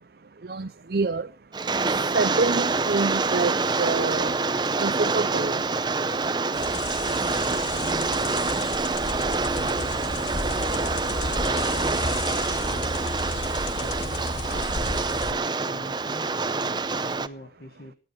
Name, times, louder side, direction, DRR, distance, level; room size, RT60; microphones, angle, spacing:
voice 1, 0.4-1.3 2.1-4.3 4.8-5.6, right 3 dB, 60° right, 0.6 m, -26 dB
Rain, 1.5-17.3, right 3 dB, 25° right, 0.7 m, -26 dB
sound 1, 6.5-15.3, left 2 dB, 75° left, 1.8 m, -33 dB
voice 2, 7.2-13.1 13.8-18.0, left 1 dB, 55° left, 1.8 m, -43 dB
18.5 x 12.0 x 4.6 m
head